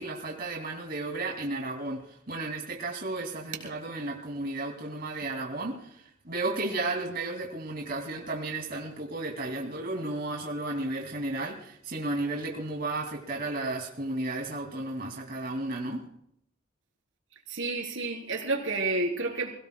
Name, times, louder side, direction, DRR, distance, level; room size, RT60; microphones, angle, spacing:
voice 1, 0.0-16.0, right 2 dB, 50° right, 0 dB, 2.6 m, -33 dB
voice 2, 17.5-19.5, right 3 dB, 85° right, 2 dB, 3.6 m, -30 dB
27.5 x 17.0 x 2.3 m, 0.73 s
head